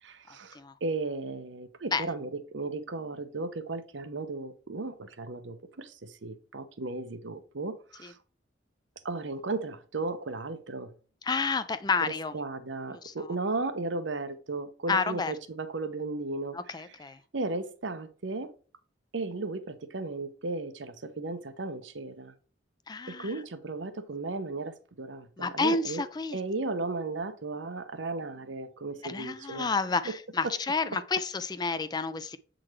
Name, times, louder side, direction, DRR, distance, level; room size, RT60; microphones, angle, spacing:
voice 1, 0.0-8.2 9.0-10.9 12.0-16.9 17.3-18.5 19.1-22.3 23.1-26.0 26.3-29.7 30.0-30.1 30.4-30.5, right 3 dB, 75° right, 0.8 m, -35 dB
voice 2, 11.2-12.3 12.9-13.3 14.9-15.3 16.5-17.2 22.9-23.3 25.4-26.4 29.0-32.4, left 4 dB, 20° left, 0.4 m, -30 dB
7.7 x 3.8 x 3.1 m
head